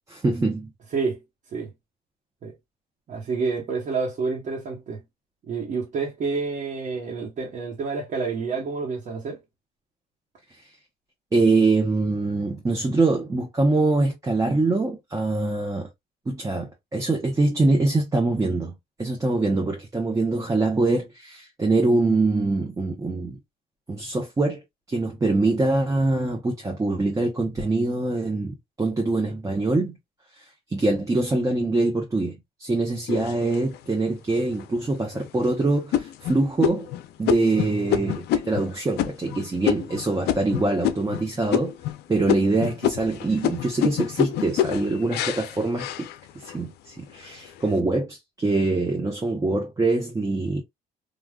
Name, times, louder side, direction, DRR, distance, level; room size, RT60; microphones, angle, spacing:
voice 1, 0.1-0.7 11.3-15.9 16.3-18.7 19.0-23.4 23.9-24.6 24.9-30.0 30.7-36.9 37.2-41.7 42.1-46.1 46.4-50.6, right 2 dB, 20° right, 0.8 m, -24 dB
voice 2, 3.1-5.0 5.5-9.4 37.5-38.2, right 4 dB, 50° right, 1.2 m, -29 dB
sound 1, 33.1-33.9 34.5-34.6 35.1-35.4 35.9-41.2 41.5-42.0 42.3-46.6 47.1-47.6, left 10 dB, 75° left, 0.5 m, -27 dB
3.5 x 2.4 x 2.3 m
cardioid pair, 110°, 17 cm